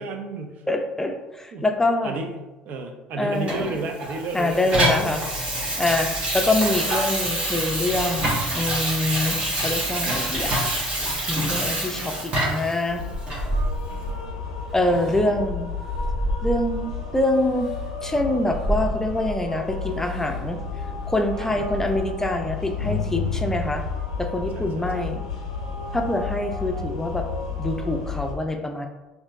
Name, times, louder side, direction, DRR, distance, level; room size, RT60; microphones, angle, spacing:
voice 1, 0.0-0.6 1.5-1.7 2.0-5.2 14.9-15.0 15.3-15.4 21.3-21.7 24.5-25.1, right 3 dB, 55° right, 4 dB, 0.5 m, -33 dB
voice 2, 0.7-2.2 3.2-3.7 4.3-5.2 5.8-9.4 9.6-10.6 11.3-13.0 14.7-15.7 16.4-17.7 18.0-20.6 21.1-23.8 24.2-25.2 25.9-27.2 27.6-28.9, left 1 dB, 10° left, 4 dB, 0.5 m, -25 dB
Water tap faucet / Sink (filling or washing), 3.5-12.8 13.3-13.4, right 1 dB, 35° right, 1.4 m, -26 dB
sound 1, 10.3-11.5 12.4-14.3 14.7-17.0 17.6-17.8 18.4-19.5 20.1-20.4 20.8-22.1, right 1 dB, 10° right, 0.8 m, -31 dB
sound 2, 12.9-28.3, left 5 dB, 90° left, 0.5 m, -32 dB
4.2 x 2.6 x 2.5 m, 1.1 s
hypercardioid pair, 65°, 3 cm